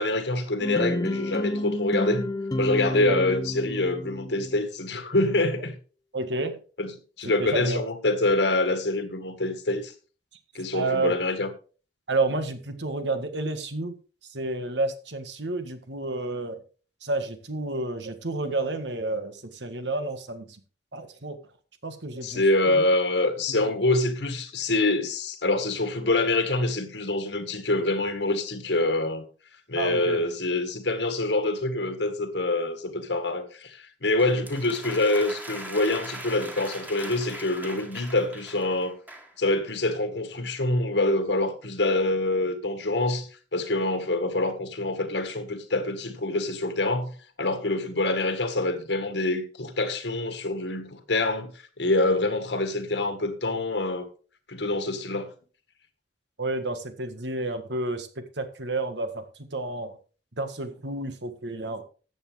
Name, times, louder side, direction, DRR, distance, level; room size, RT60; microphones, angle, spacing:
voice 1, 0.0-2.3 2.6-5.8 6.8-6.9 7.2-9.9 10.5-11.5 22.2-29.2 29.7-39.0 39.4-47.1 47.4-51.5 51.8-54.1 54.5-55.3, left 2 dB, 80° left, 1.9 m, -26 dB
sound 1, 0.6-4.6, left 1 dB, 20° left, 0.6 m, -30 dB
voice 2, 6.1-6.6 7.4-7.8 10.7-11.1 12.1-14.0 14.2-16.6 17.0-20.6 20.9-21.4 21.8-22.9 23.5-23.7 29.8-30.2 56.4-59.2 59.5-60.0 60.4-61.8, right 2 dB, 80° right, 1.7 m, -30 dB
sound 2, 34.2-39.4, right 1 dB, 10° right, 1.8 m, -41 dB
14.0 x 8.4 x 3.5 m
head